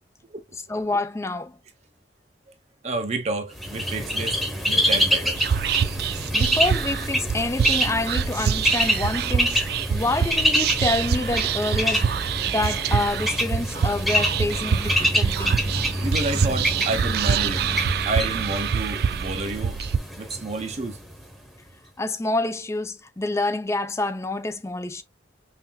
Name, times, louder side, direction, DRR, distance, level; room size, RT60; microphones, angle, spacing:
voice 1, 0.7-1.6 6.1-12.1 12.5-15.6 22.0-25.0, left 2 dB, 15° left, 0.4 m, -27 dB
voice 2, 2.8-4.4 4.6-5.4 16.0-17.7 18.1-19.8 20.2-21.0, right 2 dB, 40° right, 0.7 m, -29 dB
Bird, 3.5-21.3, equal, ahead, 0.9 m, -26 dB
Whispering, 5.3-20.0, right 7 dB, 60° right, 0.3 m, -26 dB
5.7 x 2.5 x 2.3 m
head